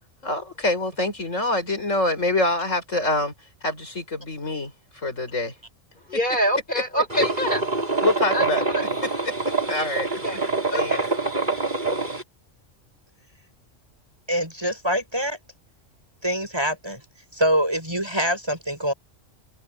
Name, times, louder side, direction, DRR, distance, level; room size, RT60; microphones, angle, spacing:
voice 1, 0.2-3.3 3.6-5.5 8.0-8.7 9.0-9.3 9.7-10.4 10.7-10.9, left 2 dB, 75° left, 6.3 m, -25 dB
voice 2, 6.1-7.6 8.3-8.4 8.7-8.9 10.2-10.4 10.7-11.1, equal, 40° left, 5.2 m, -25 dB
sound 1, 7.1-12.2, right 3 dB, 35° right, 6.2 m, -25 dB
voice 3, 14.3-15.4 16.2-17.0 17.3-18.9, equal, 20° right, 6.7 m, -24 dB
omnidirectional pair, 1.3 m